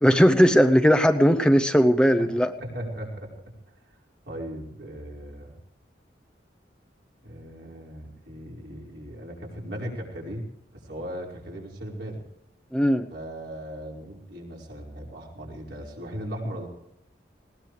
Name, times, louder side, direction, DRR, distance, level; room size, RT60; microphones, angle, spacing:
voice 1, 0.0-2.5 12.7-13.1, equal, 5° left, 6 dB, 0.7 m, -18 dB
voice 2, 2.6-3.3 4.2-5.5 7.2-10.5 10.8-12.2 13.1-16.7, equal, 65° right, -2 dB, 5.0 m, -37 dB
20.0 x 19.0 x 3.3 m, 0.78 s
head